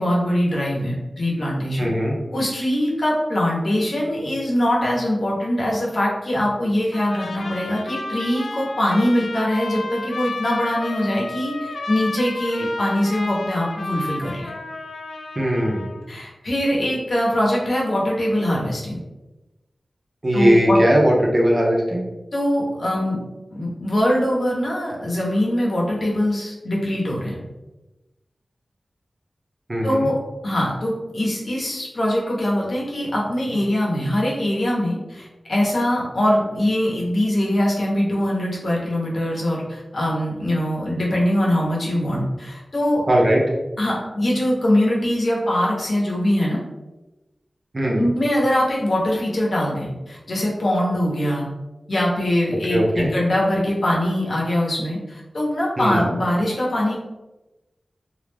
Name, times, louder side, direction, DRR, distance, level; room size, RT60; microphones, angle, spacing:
voice 1, 0.0-1.9 2.3-14.5 16.1-19.0 20.3-20.8 22.3-23.2 23.5-27.4 29.8-30.2 30.4-43.0 43.8-46.6 48.0-51.5 51.9-57.0, left 1 dB, 60° left, -4 dB, 0.7 m, -22 dB
voice 2, 1.8-2.1 15.4-15.9 20.2-22.0 29.7-30.0 43.1-43.4 47.7-48.0 52.7-53.1 55.8-56.0, equal, 35° right, -2 dB, 0.5 m, -19 dB
Trumpet, 6.9-16.0, left 2 dB, 90° left, 0.3 m, -32 dB
2.4 x 2.0 x 3.2 m, 1.1 s
wide cardioid pair, 85°, 0 cm